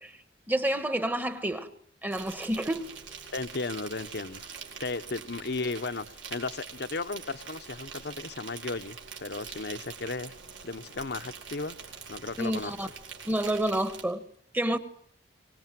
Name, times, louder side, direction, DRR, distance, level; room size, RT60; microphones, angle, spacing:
voice 1, 0.5-1.7 2.0-2.9 12.4-12.9 13.2-14.2 14.5-14.8, right 1 dB, 10° right, 1.4 m, -29 dB
Insect, 2.1-14.0, right 6 dB, 90° right, 4.3 m, -44 dB
voice 2, 3.3-4.5 4.8-10.3 10.6-11.8 12.1-12.9, left 3 dB, 60° left, 1.0 m, -35 dB
24.5 x 18.5 x 9.1 m
head